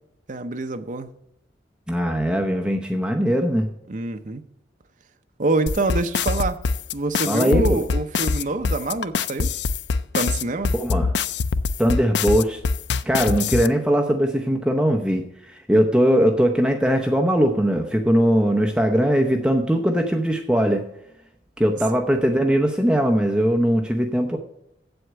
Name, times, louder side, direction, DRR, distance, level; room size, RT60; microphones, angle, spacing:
voice 1, 0.3-1.1 3.9-4.4 5.4-6.6 6.9-9.5 10.1-10.8, right 3 dB, 45° right, 0.7 m, -26 dB
voice 2, 1.9-3.7 7.3-7.8 10.7-11.1 11.8-12.6 13.1-20.9 21.6-24.4, equal, 5° right, 0.7 m, -20 dB
sound 1, 5.7-13.7, left 4 dB, 70° left, 0.4 m, -23 dB
7.9 x 7.8 x 8.0 m
head